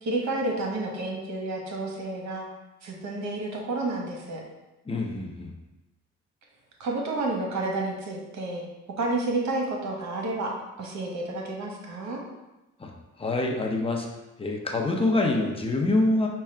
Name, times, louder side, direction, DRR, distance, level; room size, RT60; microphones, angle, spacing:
voice 1, 0.0-2.4 2.8-4.4 6.8-8.6 9.0-12.2, right 2 dB, 65° right, 0 dB, 1.1 m, -30 dB
voice 2, 4.9-5.5 12.8-12.9 13.2-14.1 14.4-16.3, left 2 dB, 20° left, 1 dB, 0.7 m, -25 dB
4.8 x 2.3 x 4.3 m, 1.0 s
cardioid pair, 90°, 30 cm